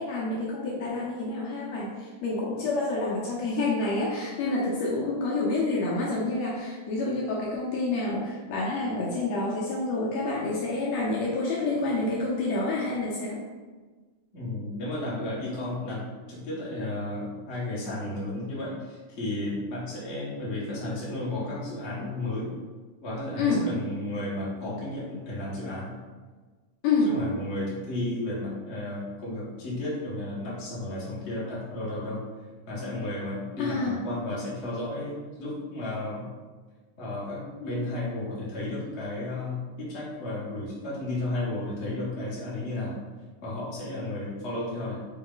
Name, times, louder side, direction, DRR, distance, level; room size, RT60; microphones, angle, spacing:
voice 1, 0.0-13.4 23.4-23.7 26.8-27.1 33.6-34.0, left 3 dB, 75° left, -4 dB, 1.7 m, -28 dB
voice 2, 14.3-22.5 23.0-25.9 27.0-32.2 32.7-36.3 37.0-42.9 43.4-45.0, left 1 dB, 45° left, -7 dB, 0.9 m, -33 dB
4.5 x 3.1 x 3.8 m, 1.4 s
omnidirectional pair, 3.4 m